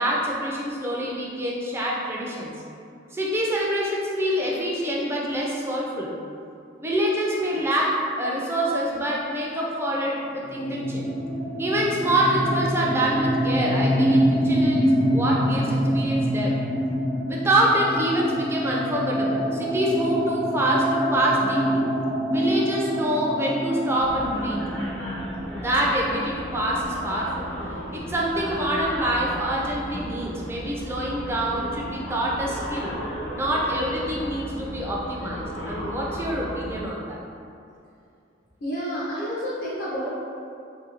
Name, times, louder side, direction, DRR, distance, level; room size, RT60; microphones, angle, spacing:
voice 1, 0.0-2.5 3.1-6.1 6.8-11.1 11.6-16.5 17.3-21.9 22.3-24.6 25.5-27.5 27.9-32.9 33.3-37.2, right 1 dB, 15° right, -3 dB, 0.3 m, -26 dB
sound 1, 10.4-26.0, equal, 65° right, 0.9 m, -25 dB
sound 2, 24.0-36.9, equal, 90° left, 1.0 m, -34 dB
voice 2, 38.6-40.1, equal, 55° left, -7 dB, 0.4 m, -30 dB
3.0 x 2.6 x 2.8 m, 2.5 s
head